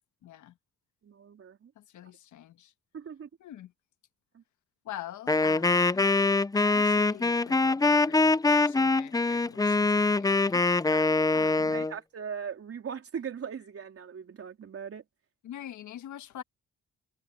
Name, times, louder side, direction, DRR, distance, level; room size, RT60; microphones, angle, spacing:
voice 1, 0.2-0.6 1.7-2.7 3.4-3.7 4.8-6.1 6.5-10.7 11.3-11.9 15.4-16.4, left 11 dB, 75° left, 1.6 m, -45 dB
voice 2, 1.0-1.7 2.9-3.3 4.3-4.4 10.8-11.1 11.4-15.0, right 7 dB, 50° right, 3.6 m, -40 dB
Wind instrument woodwind instrument, 5.3-11.9, left 3 dB, 10° left, 0.6 m, -24 dB
cardioid pair, 90°, 30 cm